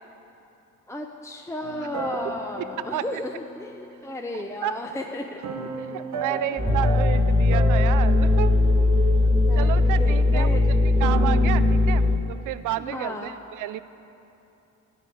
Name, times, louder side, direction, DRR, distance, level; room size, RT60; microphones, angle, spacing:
voice 1, 0.9-5.4 6.2-7.0 9.5-10.6 12.8-13.4, left 1 dB, 10° left, 3 dB, 0.6 m, -34 dB
sound 1, 1.6-4.3 5.4-9.8 10.8-11.4, right 3 dB, 65° right, 1.1 m, -35 dB
voice 2, 5.9-8.6 9.2-10.6 11.0-13.8, right 13 dB, 85° right, 14 dB, 0.5 m, -31 dB
sound 2, 6.6-12.2, left 2 dB, 20° right, 1.5 m, -19 dB
11.0 x 6.8 x 8.5 m, 2.9 s
cardioid pair, 90°, 30 cm